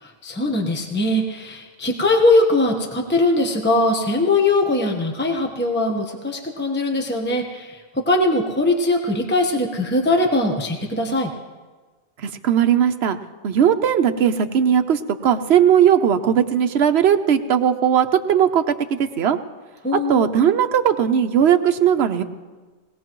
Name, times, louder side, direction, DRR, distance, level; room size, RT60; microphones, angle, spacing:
voice 1, 0.0-11.3 19.8-20.3, left 2 dB, 10° left, 2 dB, 1.0 m, -21 dB
voice 2, 12.2-13.2 13.4-19.4 19.9-22.2, right 8 dB, 65° right, 8 dB, 1.0 m, -18 dB
20.5 x 17.0 x 3.1 m, 1.3 s
omnidirectional pair, 1.2 m